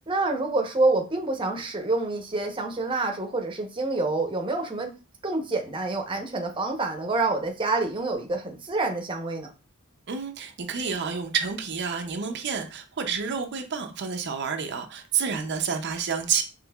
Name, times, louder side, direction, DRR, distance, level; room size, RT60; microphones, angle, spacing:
voice 1, 0.1-4.9 5.2-9.5, right 2 dB, 25° right, 0.8 m, -27 dB
voice 2, 10.1-16.4, right 6 dB, 55° right, 0.6 m, -29 dB
5.3 x 3.1 x 2.3 m
head